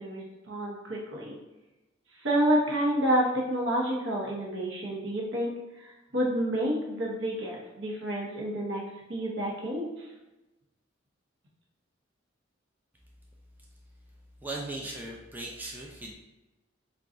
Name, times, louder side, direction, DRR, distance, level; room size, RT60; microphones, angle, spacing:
voice 1, 0.0-1.4 2.2-10.1, right 1 dB, 75° right, -2 dB, 0.8 m, -29 dB
voice 2, 14.4-16.1, right 2 dB, 10° right, -2 dB, 0.3 m, -38 dB
2.5 x 2.2 x 3.7 m, 1.1 s
head